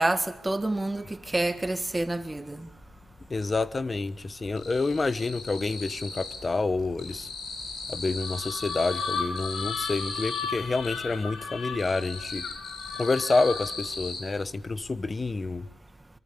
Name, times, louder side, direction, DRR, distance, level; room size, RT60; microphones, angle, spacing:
voice 1, 0.0-2.7, right 2 dB, 15° right, 1.6 m, -28 dB
sound 1, 1.0-1.1 1.4-2.6 2.9-3.6 3.9-6.5 6.8-10.9 11.4-14.2, left 3 dB, 75° left, 7.4 m, -38 dB
voice 2, 3.3-7.3 7.9-12.4 13.0-15.7, left 3 dB, 25° left, 1.0 m, -28 dB
sound 2, 8.2-13.9, left 5 dB, 90° left, 3.3 m, -35 dB
24.5 x 24.5 x 8.3 m
wide cardioid pair, 150°, 0 cm